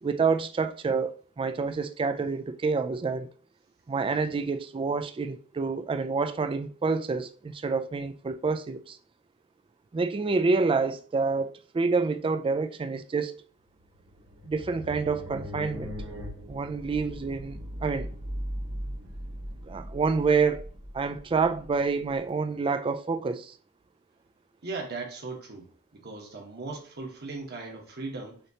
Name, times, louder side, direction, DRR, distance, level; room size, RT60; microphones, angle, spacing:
voice 1, 0.0-3.3 3.9-9.0 9.9-13.4 14.5-15.9 16.5-18.1 19.6-20.7 20.9-23.5, right 4 dB, 25° right, 0.3 m, -28 dB
sound 1, 13.8-22.2, equal, 75° right, 1.2 m, -39 dB
voice 2, 24.6-25.7 25.9-28.4, right 3 dB, 50° right, 1.2 m, -38 dB
6.3 x 2.9 x 2.8 m
head